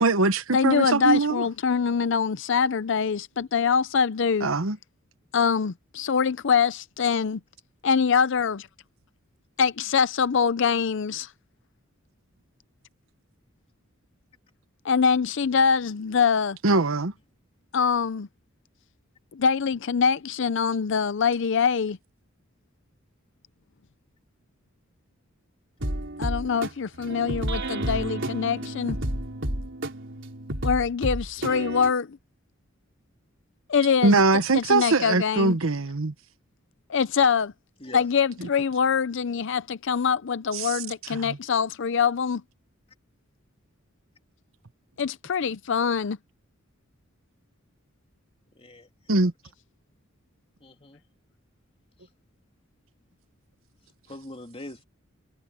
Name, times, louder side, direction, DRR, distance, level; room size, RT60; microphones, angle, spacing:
voice 1, 0.0-1.5 4.4-4.8 16.6-17.1 34.0-36.1 40.5-40.7 41.2-41.4 49.1-49.3, right 3 dB, 85° right, 1.1 m, -22 dB
voice 2, 0.5-4.5 5.3-7.4 7.8-8.7 9.6-11.3 14.8-16.6 17.7-18.3 19.3-22.0 26.2-29.0 30.6-32.2 33.7-34.2 34.5-35.6 36.9-37.5 37.9-42.4 45.0-46.2, left 6 dB, 65° left, 0.6 m, -24 dB
sound 1, 25.8-31.9, right 1 dB, 65° right, 4.3 m, -31 dB
voice 3, 48.6-48.9 50.6-51.0 54.1-54.8, left 1 dB, 30° left, 2.9 m, -42 dB
head